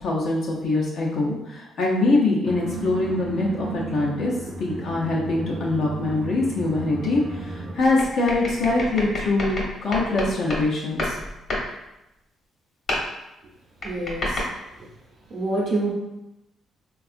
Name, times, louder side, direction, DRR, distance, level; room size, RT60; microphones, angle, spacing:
voice 1, 0.0-4.3 4.6-11.2, left 2 dB, 65° left, -4 dB, 0.6 m, -23 dB
sound 1, 2.4-7.7, right 4 dB, 30° right, 0.5 m, -34 dB
sound 2, 7.8-10.7 11.0-11.7 12.9-13.1 13.8-14.4, left 1 dB, 50° left, 0.9 m, -29 dB
voice 2, 13.8-14.5 14.7-14.9 15.3-15.9, right 2 dB, 65° right, -4 dB, 0.8 m, -27 dB
3.4 x 2.3 x 2.4 m, 0.92 s
cardioid pair, 90°, 0 cm